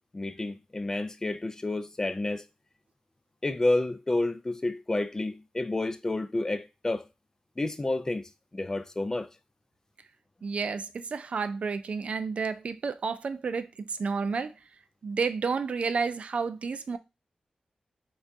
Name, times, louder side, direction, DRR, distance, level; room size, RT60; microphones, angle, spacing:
voice 1, 0.1-2.4 3.4-7.1 7.6-8.2 8.5-9.3, left 2 dB, 25° left, 0.4 m, -30 dB
voice 2, 10.4-14.5 15.0-17.0, right 5 dB, 60° right, 0.3 m, -31 dB
5.9 x 2.4 x 2.6 m
wide cardioid pair, 110°, 2 cm